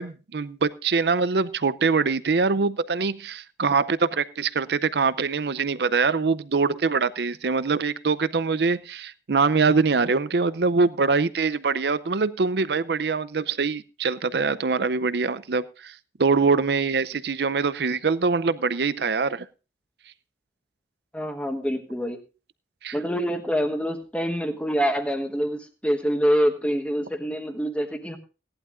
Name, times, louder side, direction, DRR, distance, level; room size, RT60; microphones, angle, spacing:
voice 1, 0.0-19.5 22.8-23.0, right 4 dB, 65° right, 0.6 m, -23 dB
voice 2, 21.1-22.2 22.9-28.2, equal, 5° left, 1.2 m, -25 dB
17.5 x 11.5 x 2.5 m
head